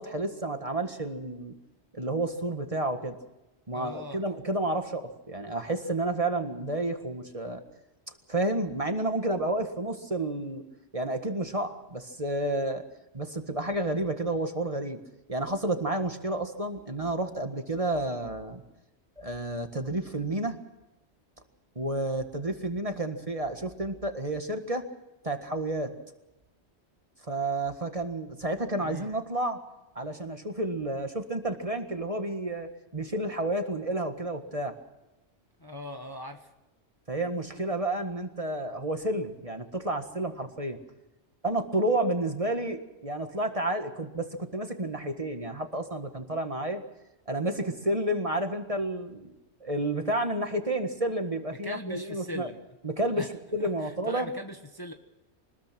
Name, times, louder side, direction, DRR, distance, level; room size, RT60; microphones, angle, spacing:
voice 1, 0.0-1.5 1.9-3.2 3.7-7.6 8.3-10.6 10.9-12.8 13.1-15.0 15.3-18.6 19.2-20.6 21.8-24.8 25.2-25.9 27.2-29.6 30.0-34.7 37.1-40.8 41.4-46.8 47.3-49.3 49.6-52.5 52.8-54.3, right 1 dB, 30° right, 6 dB, 1.8 m, -30 dB
voice 2, 3.7-4.2 28.8-29.1 35.6-36.5 51.6-52.6 53.2-53.3 53.6-54.9, left 1 dB, 20° left, 5 dB, 1.3 m, -40 dB
25.0 x 20.0 x 6.0 m, 0.98 s
omnidirectional pair, 1.2 m